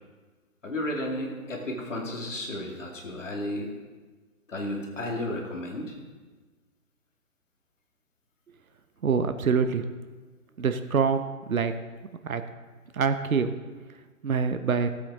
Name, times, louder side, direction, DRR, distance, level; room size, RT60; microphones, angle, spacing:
voice 1, 0.6-3.7 4.5-5.9, left 1 dB, 55° left, 0 dB, 2.6 m, -33 dB
voice 2, 9.0-9.9 10.6-11.7 12.2-12.4 12.9-13.5 14.2-14.9, right 5 dB, 65° right, 9 dB, 0.8 m, -25 dB
15.0 x 8.5 x 3.7 m, 1.4 s
figure-of-eight pair, 145°, 44 cm